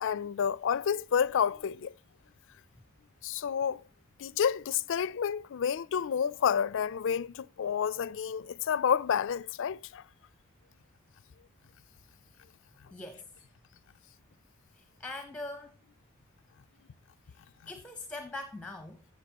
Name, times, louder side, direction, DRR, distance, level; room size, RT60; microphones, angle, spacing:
voice 1, 0.0-1.9 3.2-3.8 4.2-10.0, left 7 dB, 60° left, 0.4 m, -29 dB
voice 2, 12.9-13.3 14.7-15.8 17.2-19.0, left 2 dB, 5° left, 0.8 m, -43 dB
13.0 x 7.6 x 2.9 m
head